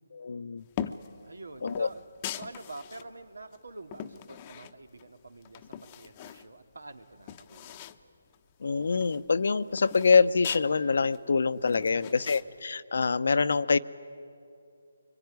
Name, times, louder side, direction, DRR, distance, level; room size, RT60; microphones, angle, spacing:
voice 1, 0.1-0.6 1.6-1.9 8.6-13.8, left 5 dB, 65° left, 14 dB, 0.8 m, -25 dB
sound 1, 0.7-1.1 1.7-3.1 3.5-5.1 5.4-6.5 6.8-6.9 7.1-8.0 8.3-8.4 8.7-10.7 11.1-12.4, left 10 dB, 25° left, 0.9 m, -41 dB
voice 2, 1.2-2.0 2.4-7.9 11.9-12.4, right 2 dB, 85° right, 7 dB, 2.3 m, -47 dB
24.0 x 24.0 x 9.5 m, 2.6 s
figure-of-eight pair, 155°, 0 cm